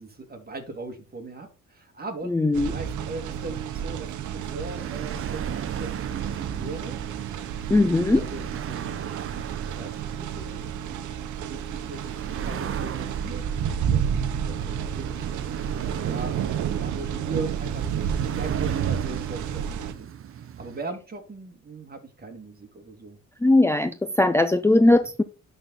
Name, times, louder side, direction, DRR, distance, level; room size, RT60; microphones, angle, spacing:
voice 1, 0.0-2.4 2.7-7.0 7.8-8.9 9.8-11.1 11.5-12.1 12.4-13.5 13.9-15.2 16.1-16.4 16.8-17.9 18.2-20.1 20.3-23.2, right 3 dB, 30° right, 2.4 m, -39 dB
voice 2, 2.3-2.7 7.7-8.2 23.4-25.2, left 2 dB, 10° left, 0.6 m, -19 dB
sound 1, 2.5-19.9, right 8 dB, 75° right, 1.0 m, -31 dB
sound 2, 4.1-20.8, right 9 dB, 45° right, 0.7 m, -37 dB
11.5 x 4.2 x 3.8 m
cardioid pair, 90°, 30 cm